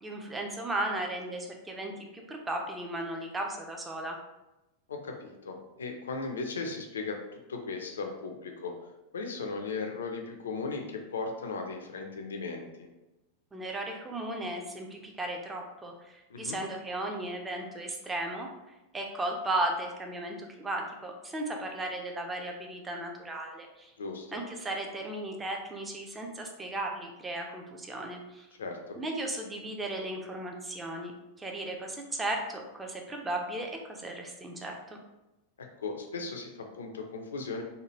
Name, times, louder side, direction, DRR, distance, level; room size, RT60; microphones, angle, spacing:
voice 1, 0.0-4.2 13.5-18.5 18.9-23.9 24.3-28.5 29.0-31.1 31.4-35.0, right 1 dB, 15° right, 2 dB, 0.5 m, -35 dB
voice 2, 4.9-7.2 7.5-8.7 9.1-12.9 16.3-16.6 24.0-24.4 28.6-29.0 35.8-37.6, left 4 dB, 65° left, 3 dB, 0.4 m, -37 dB
3.1 x 2.2 x 2.9 m, 0.99 s
figure-of-eight pair, 90°, 0 cm